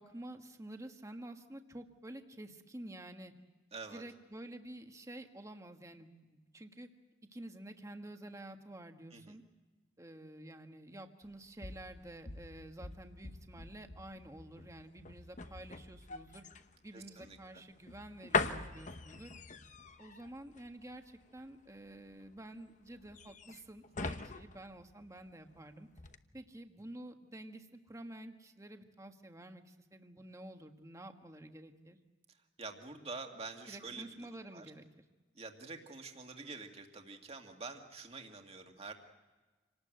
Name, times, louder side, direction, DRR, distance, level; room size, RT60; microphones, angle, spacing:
voice 1, 0.0-3.3 3.9-6.9 7.3-9.4 10.0-16.4 16.8-19.3 20.0-25.9 26.3-32.0 33.7-35.0, right 1 dB, 20° right, 6 dB, 1.5 m, -50 dB
voice 2, 3.7-4.0 9.1-9.4 16.9-17.6 32.6-34.1 34.5-34.7 35.3-38.9, right 4 dB, 35° right, 4 dB, 2.3 m, -47 dB
sound 1, 11.2-25.6 25.9-26.2, left 4 dB, 45° left, 1.0 m, -42 dB
27.5 x 19.0 x 7.9 m, 1.2 s
head